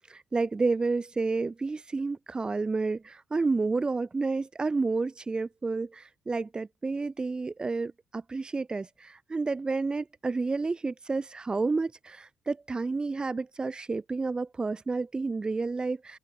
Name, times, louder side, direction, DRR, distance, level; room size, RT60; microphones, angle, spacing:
voice 1, 0.1-16.2, right 3 dB, 30° right, 1.5 m, -30 dB
open air
figure-of-eight pair, 40°, 3 cm